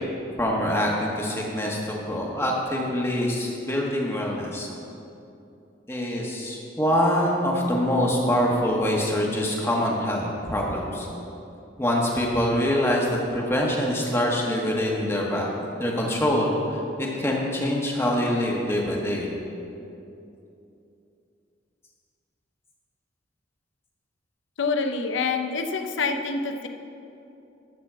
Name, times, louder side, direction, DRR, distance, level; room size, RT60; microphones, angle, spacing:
voice 1, 0.4-4.7 5.9-11.1 11.8-15.5 15.8-19.3, left 1 dB, 15° left, -2 dB, 1.3 m, -25 dB
voice 2, 24.6-26.7, left 4 dB, 85° left, 6 dB, 0.7 m, -26 dB
12.0 x 4.1 x 7.5 m, 2.8 s
head